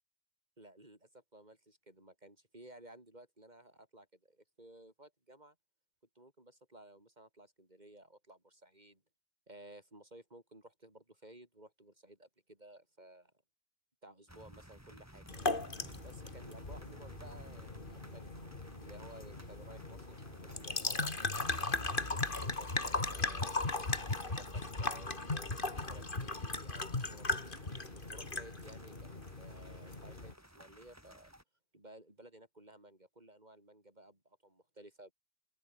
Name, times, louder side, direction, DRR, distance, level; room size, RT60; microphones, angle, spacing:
voice 1, 0.6-5.6 6.1-9.0 9.5-13.3 14.0-15.6 16.0-18.3 18.6-21.2 21.7-27.5 27.9-31.3 31.7-35.1, right 1 dB, 45° right, 6.3 m, -56 dB
sound 1, 14.3-31.4, equal, 15° right, 6.5 m, -57 dB
sound 2, 15.3-30.3, left 2 dB, 55° left, 3.0 m, -38 dB
open air
omnidirectional pair, 1.1 m